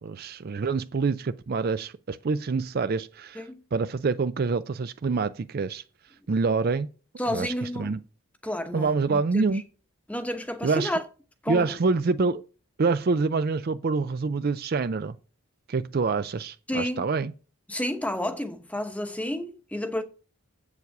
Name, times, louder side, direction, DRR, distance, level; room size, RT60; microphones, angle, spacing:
voice 1, 0.0-3.4 3.7-5.8 6.3-6.9 7.3-8.0 8.7-9.6 10.6-10.9 11.5-12.4 12.8-15.2 15.7-17.3, right 4 dB, 45° right, 0.4 m, -26 dB
voice 2, 7.2-8.0 8.4-9.6 10.1-11.0 11.4-11.8 16.7-17.0 17.7-20.0, left 1 dB, 5° left, 0.9 m, -31 dB
8.0 x 7.2 x 5.9 m
head